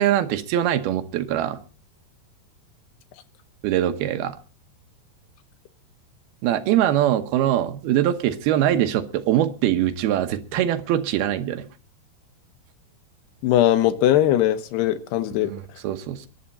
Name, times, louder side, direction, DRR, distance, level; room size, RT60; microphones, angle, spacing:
voice 1, 0.0-1.6 3.6-4.4 6.4-11.7 15.4-16.3, right 11 dB, 70° right, 8 dB, 2.8 m, -22 dB
voice 2, 13.4-15.5, left 12 dB, 75° left, 12 dB, 3.1 m, -20 dB
22.0 x 11.5 x 4.2 m, 0.36 s
omnidirectional pair, 4.9 m